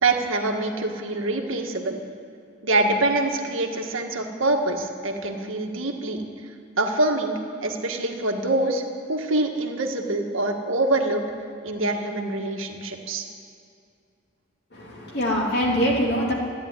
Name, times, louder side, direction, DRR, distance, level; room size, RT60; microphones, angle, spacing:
voice 1, 0.0-2.0 2.6-6.2 6.8-8.8 9.1-11.2 11.6-13.3, right 2 dB, 75° right, 3 dB, 1.7 m, -25 dB
voice 2, 14.7-16.3, equal, 50° left, -3 dB, 3.1 m, -23 dB
14.0 x 10.5 x 9.8 m, 2.4 s
head